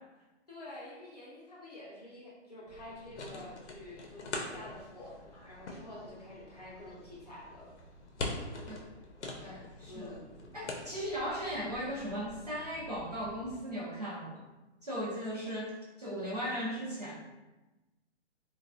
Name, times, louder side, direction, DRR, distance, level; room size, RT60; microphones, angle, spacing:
voice 1, 0.5-7.7 9.9-10.5, left 1 dB, 35° left, -6 dB, 0.6 m, -48 dB
sound 1, 2.7-13.6, left 2 dB, 75° left, 0.6 m, -44 dB
voice 2, 9.4-10.2 10.5-14.4 14.8-17.2, equal, 35° right, -6 dB, 0.5 m, -37 dB
3.1 x 2.3 x 2.5 m, 1.1 s
hypercardioid pair, 180°, 35 cm